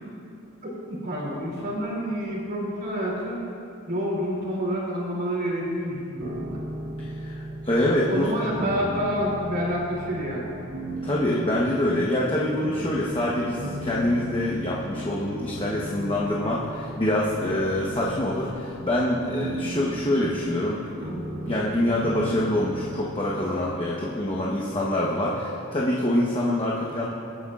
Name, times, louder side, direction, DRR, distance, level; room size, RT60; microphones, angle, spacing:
voice 1, 0.6-3.4 3.9-6.6 8.1-10.5, equal, 45° right, -4 dB, 2.9 m, -28 dB
sound 1, 6.2-25.2, right 1 dB, 75° right, 2.3 m, -37 dB
voice 2, 7.2-8.3 11.0-27.1, left 1 dB, 25° left, -5 dB, 1.0 m, -25 dB
22.0 x 9.7 x 2.5 m, 2.7 s
head